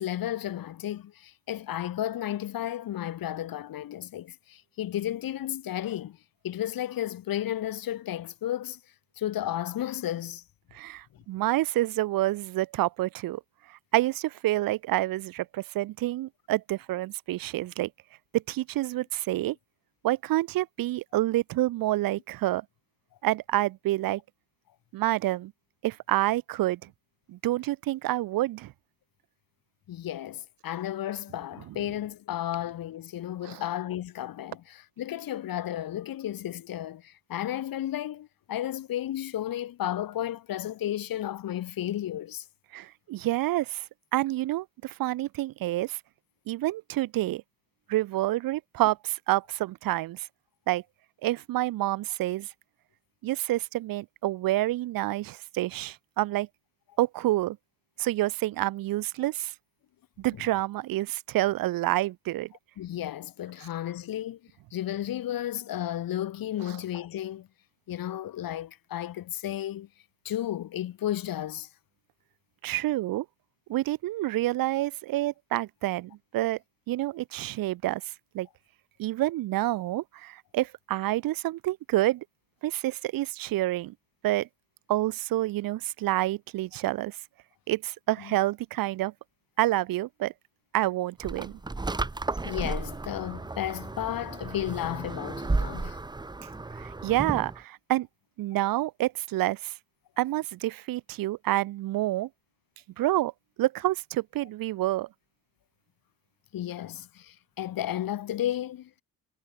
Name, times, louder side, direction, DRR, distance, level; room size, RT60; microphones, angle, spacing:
voice 1, 0.0-6.2 6.4-8.8 9.2-10.4 29.9-42.5 62.8-64.4 64.7-67.5 67.9-69.9 70.3-71.7 88.2-88.3 92.4-96.0 106.5-109.0, left 12 dB, 65° left, 3.5 m, -33 dB
voice 2, 10.7-13.4 13.7-17.9 18.3-19.6 20.0-22.6 23.2-24.2 24.9-25.5 25.8-26.9 27.3-28.7 33.4-33.6 42.7-43.8 44.1-46.0 46.5-47.4 47.9-50.3 50.7-50.8 51.2-52.5 53.2-56.5 57.0-57.6 58.0-59.5 60.2-62.5 72.6-73.3 73.7-76.6 76.9-78.5 79.0-82.2 82.6-83.9 84.2-84.5 84.9-87.2 87.7-89.1 89.6-90.3 90.7-91.6 96.7-98.1 98.4-99.7 100.2-102.3 103.0-103.3 103.6-105.1, right 16 dB, 65° right, 0.7 m, -28 dB
sound 1, 91.2-97.6, right 3 dB, 10° right, 1.4 m, -33 dB
cardioid pair, 165°, 38 cm